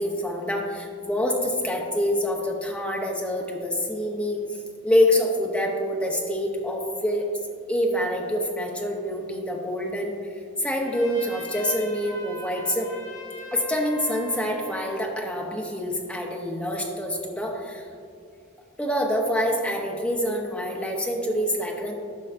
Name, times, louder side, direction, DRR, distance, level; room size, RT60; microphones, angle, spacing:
voice 1, 0.0-4.4 4.8-7.3 7.7-10.1 10.6-12.9 13.5-17.9 18.8-21.9, left 1 dB, 5° left, 0 dB, 0.6 m, -26 dB
Trumpet, 10.8-15.1, left 1 dB, 35° left, 1.1 m, -40 dB
10.5 x 5.6 x 2.5 m, 2.3 s
head